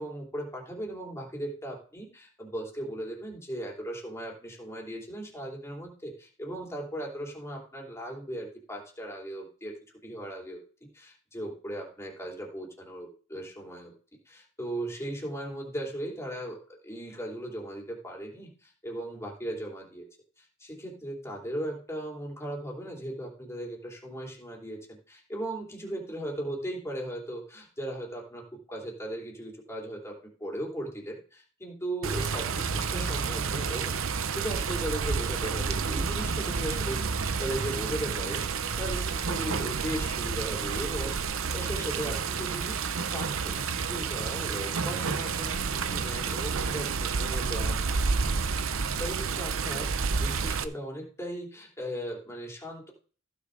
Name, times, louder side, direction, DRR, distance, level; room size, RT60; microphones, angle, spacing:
voice 1, 0.0-9.7 10.0-10.6 10.9-13.9 14.3-20.1 20.4-47.8 49.0-52.9, right 1 dB, 15° left, -1 dB, 3.1 m, -37 dB
Water, 32.0-50.6, right 5 dB, 85° right, 0.8 m, -30 dB
15.0 x 6.5 x 3.9 m, 0.40 s
head